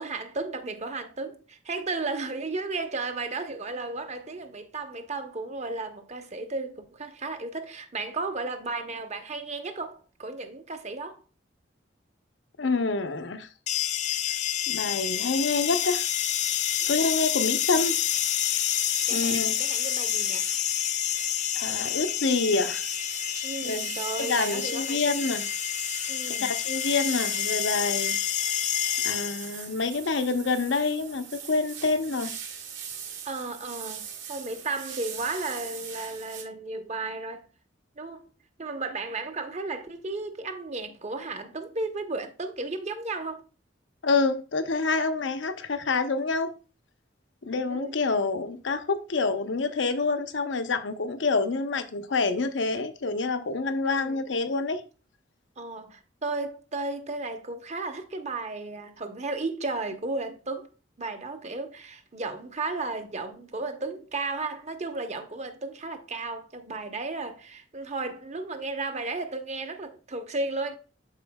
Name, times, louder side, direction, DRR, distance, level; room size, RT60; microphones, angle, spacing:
voice 1, 0.0-11.2 19.1-20.5 23.4-25.3 26.1-26.6 33.2-37.5 38.0-38.3 38.6-43.4 47.7-47.9 53.8-54.2 55.6-60.7 61.0-70.8, right 3 dB, 40° right, 1.0 m, -34 dB
voice 2, 12.6-13.5 14.7-16.1 16.9-18.0 19.1-19.5 21.5-22.8 23.6-23.8 24.2-25.4 26.4-28.2 29.0-32.3 44.0-46.5 47.4-54.8, left 3 dB, 80° left, 0.8 m, -27 dB
sound 1, 13.7-29.6, left 11 dB, 40° left, 0.4 m, -28 dB
sound 2, 17.6-36.4, right 8 dB, 80° right, 2.2 m, -41 dB
12.5 x 4.3 x 2.3 m
head